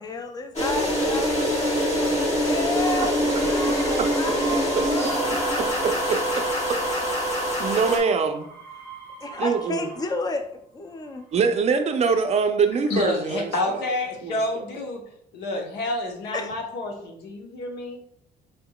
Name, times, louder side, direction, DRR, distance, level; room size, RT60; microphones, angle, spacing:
voice 1, 0.0-5.8 9.2-11.3 16.3-16.5, left 3 dB, 25° left, 6 dB, 0.5 m, -33 dB
sound 1, 0.6-8.0, equal, 40° left, 1.2 m, -24 dB
sound 2, 2.8-5.4 5.7-10.3 11.0-11.6, right 5 dB, 5° left, 1.1 m, -40 dB
voice 2, 3.0-3.7 4.0-4.3 4.7-4.8 5.6-6.4 7.6-8.5 9.4-9.8 11.3-13.9 14.2-14.6, right 5 dB, 40° right, 7 dB, 0.4 m, -25 dB
voice 3, 12.9-15.0 15.3-18.0, left 2 dB, 85° left, 1 dB, 0.9 m, -28 dB
4.1 x 3.6 x 2.3 m, 0.68 s
cardioid pair, 110°, 17 cm